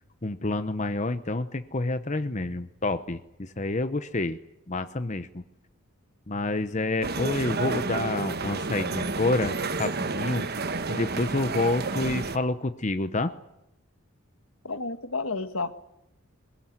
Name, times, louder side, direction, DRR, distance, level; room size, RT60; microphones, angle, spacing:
voice 1, 0.2-4.4 4.7-5.4 6.3-9.5 9.8-10.4 10.9-13.3, left 2 dB, 35° left, 10 dB, 0.9 m, -28 dB
sound 1, 7.0-12.4, right 3 dB, 45° right, 1.2 m, -30 dB
voice 2, 14.6-15.7, left 3 dB, 70° left, 10 dB, 1.7 m, -31 dB
22.0 x 21.5 x 9.7 m, 0.86 s
head